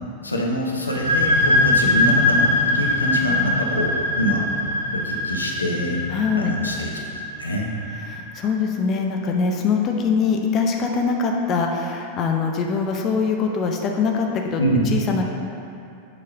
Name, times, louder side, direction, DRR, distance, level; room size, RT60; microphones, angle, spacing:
voice 1, 0.2-4.4 4.9-6.0 6.4-6.9 7.4-7.7 14.6-14.8, equal, 80° left, -1 dB, 0.7 m, -25 dB
sound 1, 0.8-8.3, left 2 dB, 90° right, 1.2 m, -22 dB
voice 2, 6.1-6.5 8.1-14.6 14.9-15.2, left 5 dB, 30° left, 1 dB, 0.5 m, -23 dB
6.8 x 3.2 x 4.8 m, 2.6 s
figure-of-eight pair, 90°, 0 cm